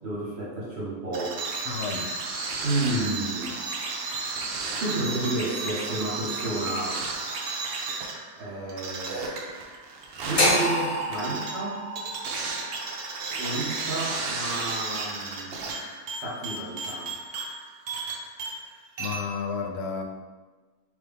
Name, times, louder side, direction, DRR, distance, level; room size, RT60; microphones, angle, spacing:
voice 1, 0.0-1.4 2.6-3.6 4.8-7.0 8.4-9.3 10.2-11.8 13.4-15.6 16.2-17.2, right 2 dB, 45° right, -7 dB, 1.2 m, -31 dB
sound 1, 1.1-18.7 19.0-19.2, right 3 dB, 90° right, 0.5 m, -33 dB
voice 2, 1.7-2.1 18.6-20.0, left 5 dB, 90° left, 2 dB, 1.1 m, -32 dB
sound 2, 10.4-14.5, left 1 dB, 40° left, 0.5 m, -28 dB
3.2 x 2.9 x 3.4 m, 1.3 s
omnidirectional pair, 1.6 m